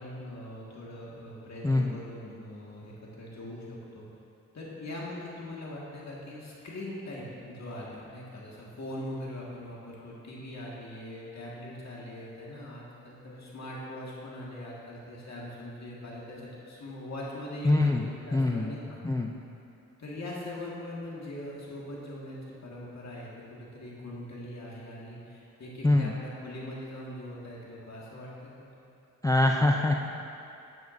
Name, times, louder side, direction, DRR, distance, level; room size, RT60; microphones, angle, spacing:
voice 1, 0.0-4.1 4.5-19.0 20.0-28.9, left 1 dB, 55° left, -5 dB, 1.8 m, -41 dB
voice 2, 1.6-2.0 17.6-18.1 18.3-18.7 19.0-19.3 25.8-26.1 29.2-29.9, left 2 dB, 10° left, 1 dB, 0.4 m, -24 dB
9.2 x 7.4 x 2.6 m, 2.6 s
cardioid pair, 70°, 32 cm